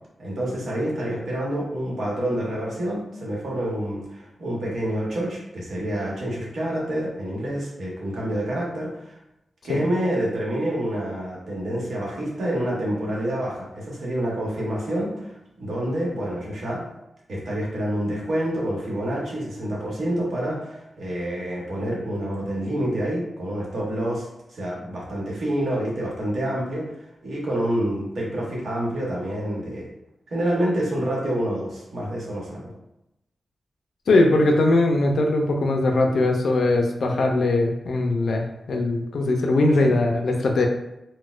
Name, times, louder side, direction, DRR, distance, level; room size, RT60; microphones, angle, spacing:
voice 1, 0.2-9.2 9.6-16.9 17.3-26.8 27.2-29.9 30.3-32.7 39.8-40.0, right 1 dB, 70° right, -4 dB, 0.9 m, -27 dB
voice 2, 34.1-40.7, left 2 dB, 75° left, 2 dB, 0.4 m, -20 dB
4.1 x 2.1 x 2.3 m, 0.88 s
wide cardioid pair, 120°, 0 cm